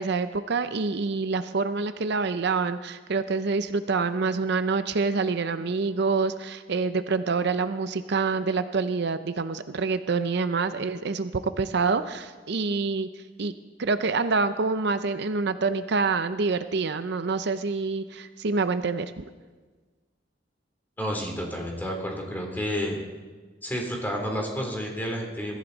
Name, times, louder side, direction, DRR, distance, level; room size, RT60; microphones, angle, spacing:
voice 1, 0.0-13.5 13.8-19.2, right 4 dB, 65° right, 11 dB, 0.6 m, -26 dB
voice 2, 21.0-23.0 23.6-25.6, equal, 10° left, 1 dB, 3.2 m, -30 dB
22.5 x 14.5 x 4.1 m, 1.4 s
head